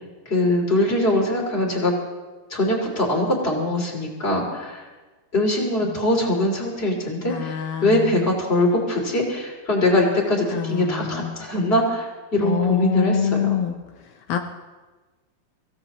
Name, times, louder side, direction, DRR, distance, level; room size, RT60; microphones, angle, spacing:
voice 1, 0.3-1.9 2.5-4.8 5.3-13.6, left 1 dB, 20° left, 0 dB, 2.7 m, -22 dB
voice 2, 7.2-8.3 10.5-11.4 12.4-14.4, left 8 dB, 80° left, 4 dB, 1.3 m, -26 dB
25.0 x 16.0 x 3.0 m, 1.3 s
omnidirectional pair, 3.4 m